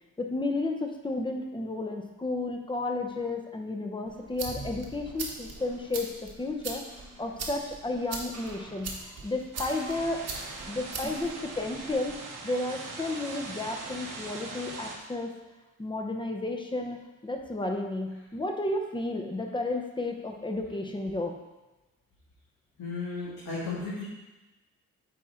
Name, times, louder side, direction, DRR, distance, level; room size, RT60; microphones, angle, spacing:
voice 1, 0.2-6.1 6.4-6.8 7.2-8.9 9.2-10.2 10.7-12.1 12.4-15.3 15.8-17.0 17.2-21.4, left 2 dB, 15° left, 3 dB, 0.7 m, -32 dB
sound 1, 4.1-12.1, right 3 dB, 50° right, 1.1 m, -41 dB
sound 2, 9.5-15.0, right 3 dB, 75° right, 1.1 m, -41 dB
voice 2, 22.8-24.0, left 3 dB, 80° left, -8 dB, 1.9 m, -34 dB
8.5 x 4.3 x 3.7 m, 1.1 s
wide cardioid pair, 150°, 32 cm